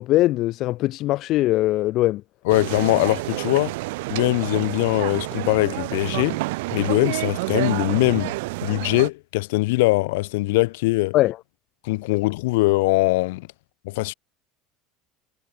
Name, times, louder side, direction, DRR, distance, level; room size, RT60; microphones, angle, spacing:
voice 1, 0.0-2.2 11.1-11.4, left 16 dB, 45° left, 0.5 m, -21 dB
voice 2, 2.4-3.8 4.1-6.4 6.7-8.3 8.6-11.1 11.8-13.5 13.8-14.1, left 22 dB, 85° left, 1.6 m, -21 dB
sound 1, 2.5-9.1, right 23 dB, 85° right, 2.5 m, -29 dB
cardioid pair, 165°, 0 cm